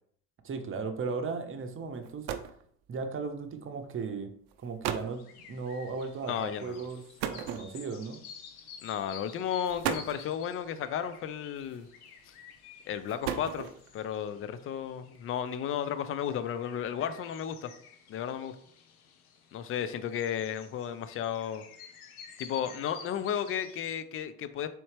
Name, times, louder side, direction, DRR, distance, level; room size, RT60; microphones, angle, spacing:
voice 1, 0.4-2.3 2.9-4.3 4.6-5.2 5.5-7.0 7.3-8.2, right 4 dB, 30° right, 7 dB, 0.7 m, -36 dB
sound 1, 1.7-1.8 2.0-2.6 3.6-3.9 4.5-4.6 4.8-5.2 7.2-8.0 9.0-9.1 9.6-10.3 11.6-12.1 12.9-13.9, right 9 dB, 65° right, 0.6 m, -35 dB
sound 2, 5.0-24.0, left 7 dB, 80° left, 0.7 m, -52 dB
voice 2, 6.3-6.9 8.8-11.9 12.9-13.7 13.9-17.7 18.1-18.6 19.5-21.6 22.4-24.7, left 9 dB, 30° left, 12 dB, 0.4 m, -33 dB
4.1 x 3.1 x 3.2 m, 0.63 s
hypercardioid pair, 60°, 44 cm